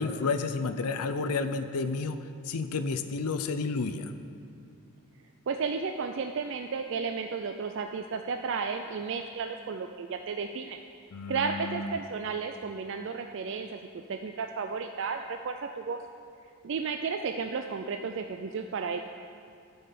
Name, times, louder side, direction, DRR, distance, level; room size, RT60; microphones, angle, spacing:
voice 1, 0.0-2.2 2.5-4.1 11.1-11.9, left 4 dB, 90° left, 10 dB, 0.6 m, -31 dB
voice 2, 5.5-10.8 11.3-16.0 16.6-19.0, right 5 dB, 55° right, 5 dB, 0.4 m, -33 dB
13.0 x 5.6 x 5.8 m, 2.4 s
head